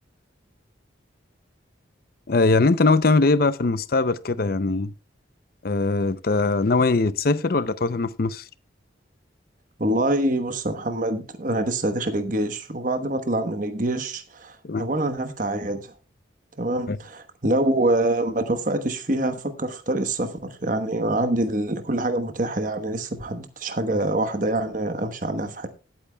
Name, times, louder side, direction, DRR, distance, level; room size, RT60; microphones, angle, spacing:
voice 1, 2.3-4.9 5.6-8.4 14.6-14.8 16.9-17.0, left 3 dB, 50° left, 0.5 m, -21 dB
voice 2, 9.8-15.9 16.6-25.7, right 1 dB, 45° right, 1.1 m, -25 dB
19.5 x 8.7 x 2.3 m
head